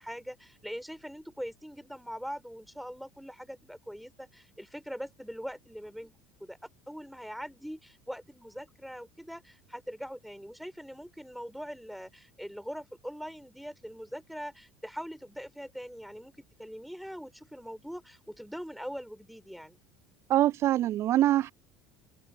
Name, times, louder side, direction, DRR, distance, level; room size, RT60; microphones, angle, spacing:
voice 1, 0.0-6.6 6.9-16.3 16.6-19.8, equal, ahead, 4.8 m, -42 dB
voice 2, 20.3-21.5, right 13 dB, 45° right, 0.6 m, -24 dB
figure-of-eight pair, 70°, 7 cm